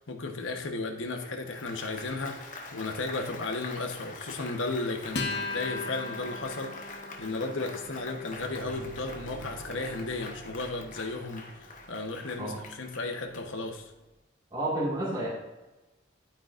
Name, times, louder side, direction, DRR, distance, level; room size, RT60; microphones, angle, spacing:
voice 1, 0.0-13.9, left 3 dB, 90° left, 3 dB, 1.1 m, -35 dB
Applause, 1.2-13.9, left 3 dB, 40° left, 1.1 m, -45 dB
Acoustic guitar, 5.1-12.0, left 3 dB, 60° left, 1.2 m, -40 dB
sound 1, 8.4-12.2, right 1 dB, 65° right, 2.2 m, -46 dB
voice 2, 14.5-15.3, right 1 dB, 20° right, -7 dB, 2.0 m, -30 dB
11.5 x 8.8 x 2.5 m, 1.1 s
head